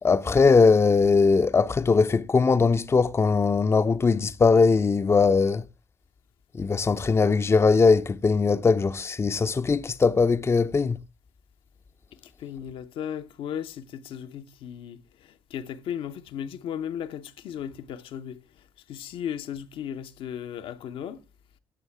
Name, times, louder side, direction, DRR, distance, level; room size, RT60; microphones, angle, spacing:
voice 1, 0.0-5.7 6.5-11.0, left 4 dB, 30° left, 0.6 m, -20 dB
voice 2, 12.1-21.2, left 9 dB, 65° left, 0.8 m, -36 dB
17.0 x 7.0 x 3.4 m
hypercardioid pair, 50°, 10 cm